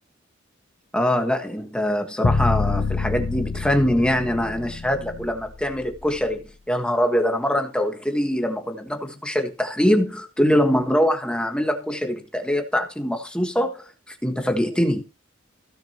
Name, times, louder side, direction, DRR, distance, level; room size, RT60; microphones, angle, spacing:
voice 1, 0.9-15.0, equal, 5° left, 1.4 m, -23 dB
sound 1, 2.2-6.3, left 4 dB, 50° left, 0.8 m, -26 dB
16.5 x 6.5 x 3.0 m
head